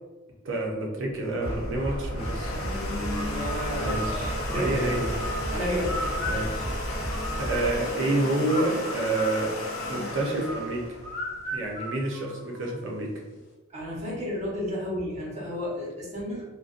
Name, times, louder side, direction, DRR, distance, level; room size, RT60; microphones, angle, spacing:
voice 1, 0.4-2.6 3.8-5.1 6.3-6.7 7.4-9.6 9.9-10.9 11.5-13.1, right 2 dB, 65° right, -1 dB, 0.6 m, -28 dB
Domestic sounds home sounds, 1.0-11.7, left 1 dB, 85° left, 0.5 m, -34 dB
sound 1, 1.4-7.8, equal, 30° left, 0.5 m, -34 dB
voice 2, 2.9-4.9 5.5-6.0 13.7-16.4, equal, 35° right, -6 dB, 0.9 m, -32 dB
sound 2, 3.1-7.8 8.5-12.9, left 1 dB, 55° left, 0.9 m, -37 dB
2.5 x 2.2 x 2.4 m, 1.2 s
head